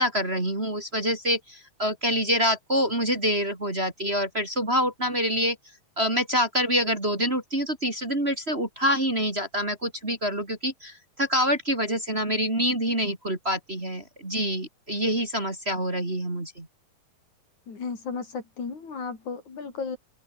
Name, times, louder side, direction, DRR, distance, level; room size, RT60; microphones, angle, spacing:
voice 1, 0.0-5.6 6.0-16.7, equal, 20° right, 3.5 m, -26 dB
voice 2, 17.7-20.0, left 5 dB, 65° left, 5.8 m, -34 dB
open air
omnidirectional pair, 3.7 m